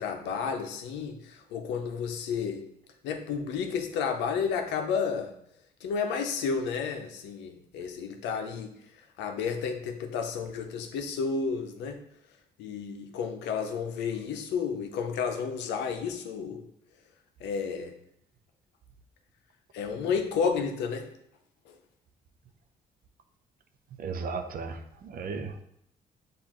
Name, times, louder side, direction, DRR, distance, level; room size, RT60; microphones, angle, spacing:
voice 1, 0.0-2.6 3.0-5.3 5.8-8.7 9.2-12.0 12.6-16.6 17.4-17.9 19.7-21.1, left 6 dB, 85° left, 5 dB, 0.6 m, -31 dB
voice 2, 23.9-25.6, right 4 dB, 55° right, 7 dB, 0.6 m, -36 dB
6.9 x 2.5 x 3.0 m, 0.75 s
supercardioid pair, 70°, 18 cm